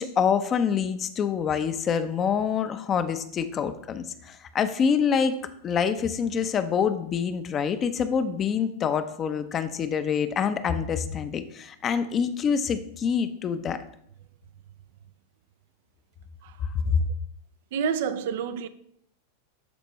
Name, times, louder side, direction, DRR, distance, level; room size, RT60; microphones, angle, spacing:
voice 1, 0.0-5.3 5.6-13.8 16.6-17.0, left 7 dB, 30° left, 0.7 m, -26 dB
voice 2, 17.7-18.7, right 7 dB, 65° right, 0.5 m, -28 dB
12.5 x 4.4 x 3.1 m
hypercardioid pair, 95°, 0 cm